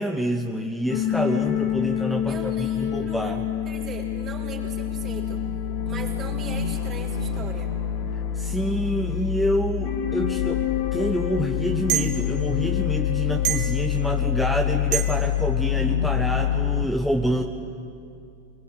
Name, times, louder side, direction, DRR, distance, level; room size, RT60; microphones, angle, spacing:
voice 1, 0.0-3.4 8.3-10.6 10.9-17.4, equal, ahead, 3 dB, 1.3 m, -27 dB
sound 1, 0.9-16.9, left 10 dB, 60° left, 2.0 m, -26 dB
voice 2, 2.2-3.4 3.6-5.5 5.8-7.7, right 5 dB, 35° right, -2 dB, 5.0 m, -39 dB
sound 2, 10.6-10.7 11.9-12.1 13.4-13.8 14.9-15.2, right 11 dB, 55° right, 3.1 m, -25 dB
24.0 x 20.0 x 9.3 m, 2.5 s
hypercardioid pair, 95°, 0 cm